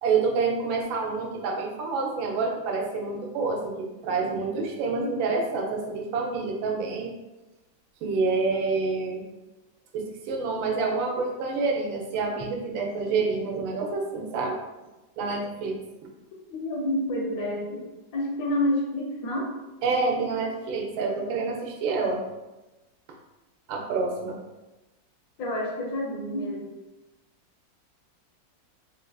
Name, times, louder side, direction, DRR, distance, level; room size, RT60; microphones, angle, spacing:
voice 1, 0.0-7.1 8.0-9.2 9.9-14.6 15.2-15.8 19.8-22.2 23.7-24.4, right 4 dB, 80° right, 0 dB, 1.4 m, -27 dB
voice 2, 16.5-17.9 18.1-19.5 25.4-26.6, left 1 dB, 70° left, -2 dB, 0.9 m, -28 dB
4.0 x 2.4 x 2.2 m, 1.1 s
omnidirectional pair, 2.1 m